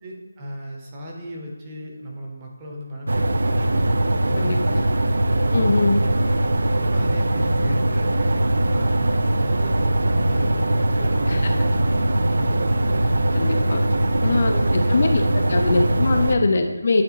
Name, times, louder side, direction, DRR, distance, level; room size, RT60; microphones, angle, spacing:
voice 1, 0.0-3.9 4.2-6.0 6.7-8.3 8.7-13.4 13.9-15.6 16.5-16.8, equal, 15° right, -2 dB, 0.7 m, -37 dB
sound 1, 3.1-16.3, right 1 dB, 60° right, 0.4 m, -21 dB
voice 2, 4.4-4.8 5.5-6.0 11.3-11.5 13.3-13.8 14.2-15.2 15.5-17.0, left 3 dB, 35° left, 5 dB, 0.3 m, -22 dB
9.2 x 3.8 x 2.8 m, 1.2 s
figure-of-eight pair, 175°, 0 cm